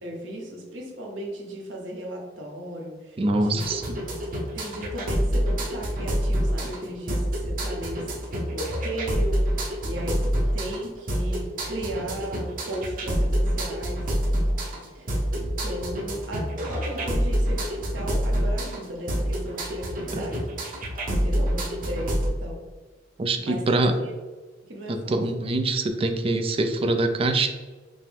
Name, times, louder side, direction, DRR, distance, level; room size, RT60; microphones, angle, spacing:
voice 1, 0.0-3.6 4.5-14.1 14.9-20.5 21.1-22.6 23.5-24.1 24.6-25.2, right 1 dB, 75° right, 0 dB, 0.9 m, -36 dB
voice 2, 3.2-4.0 20.1-20.2 23.2-24.0 24.9-27.5, right 2 dB, 30° right, 6 dB, 0.4 m, -24 dB
sound 1, 3.6-22.3, equal, 45° right, 0.7 m, -27 dB
5.4 x 2.0 x 3.4 m, 1.3 s
head